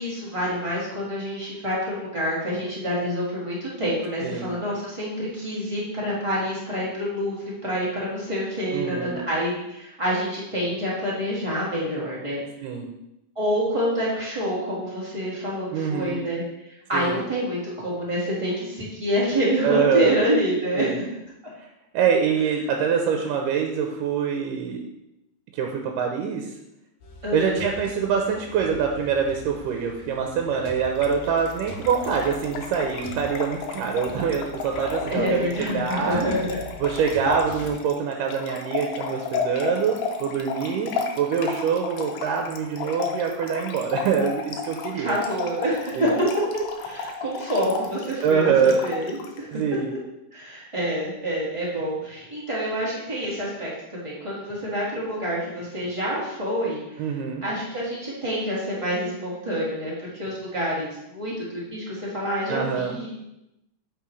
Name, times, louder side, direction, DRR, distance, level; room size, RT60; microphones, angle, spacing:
voice 1, 0.0-12.4 13.3-16.4 16.9-21.0 27.2-27.6 35.1-36.6 45.0-46.3 46.8-49.6 50.3-53.7 54.0-57.0 57.4-63.2, equal, 25° right, -7 dB, 0.6 m, -27 dB
voice 2, 4.2-4.5 8.7-9.2 12.6-12.9 15.7-16.2 16.9-17.2 19.6-20.2 20.8-21.0 21.9-24.8 25.5-26.5 27.3-36.2 36.8-45.1 45.9-46.1 48.2-48.8 49.5-49.9 57.0-57.4 62.5-63.0, right 6 dB, 80° right, 2 dB, 2.2 m, -24 dB
sound 1, 27.0-37.7, left 1 dB, 60° left, 2.5 m, -43 dB
Trickle dribble / Fill (with liquid), 30.9-49.4, left 6 dB, 80° left, 2.2 m, -33 dB
8.3 x 5.4 x 3.2 m, 0.87 s
omnidirectional pair, 3.9 m